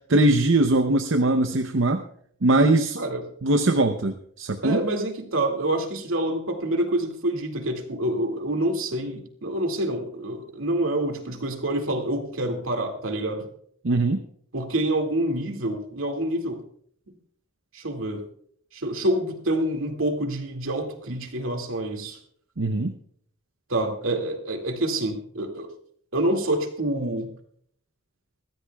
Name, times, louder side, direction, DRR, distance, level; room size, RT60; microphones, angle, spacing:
voice 1, 0.1-2.0 2.4-3.0 3.4-4.8 13.8-14.2 22.6-22.9, right 2 dB, 65° right, 6 dB, 0.7 m, -21 dB
voice 2, 4.6-13.5 14.5-16.6 17.7-18.2 18.7-22.2 23.7-25.7 26.1-27.3, right 1 dB, 85° right, 3 dB, 2.2 m, -27 dB
22.5 x 15.0 x 2.3 m, 0.63 s
head